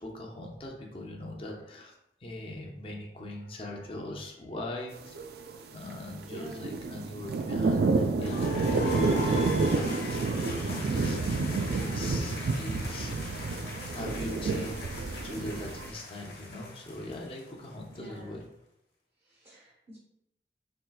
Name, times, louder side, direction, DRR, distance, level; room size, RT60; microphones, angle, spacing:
voice 1, 0.0-1.9 2.2-5.2 5.7-18.4, left 1 dB, 30° left, 0 dB, 0.5 m, -41 dB
sound 1, 5.2-5.5 6.3-15.9, right 3 dB, 60° right, 0.3 m, -29 dB
voice 2, 6.3-6.7 10.8-11.1 17.9-18.4 19.3-20.0, right 1 dB, 35° right, -5 dB, 0.7 m, -46 dB
sound 2, 8.2-18.0, left 2 dB, 75° left, 1.0 m, -41 dB
4.4 x 3.2 x 2.2 m, 0.81 s
head